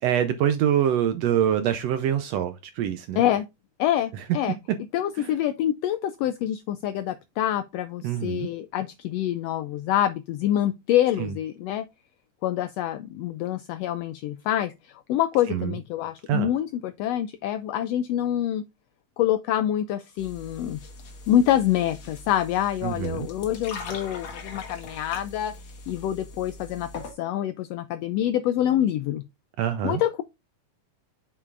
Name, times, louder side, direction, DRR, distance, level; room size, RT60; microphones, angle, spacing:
voice 1, 0.0-3.2 4.1-4.2 5.2-5.3 8.0-8.5 11.2-11.3 15.5-15.8 16.3-16.5 22.8-23.3 29.6-30.0, right 10 dB, 75° right, 1.6 m, -25 dB
voice 2, 3.2-3.5 3.8-4.6 4.9-11.8 12.4-18.6 19.2-20.8 21.3-29.2 29.8-30.2, left 11 dB, 90° left, 1.4 m, -26 dB
sound 1, 20.2-27.1, left 3 dB, 50° left, 1.7 m, -41 dB
7.2 x 6.8 x 2.4 m
omnidirectional pair, 3.4 m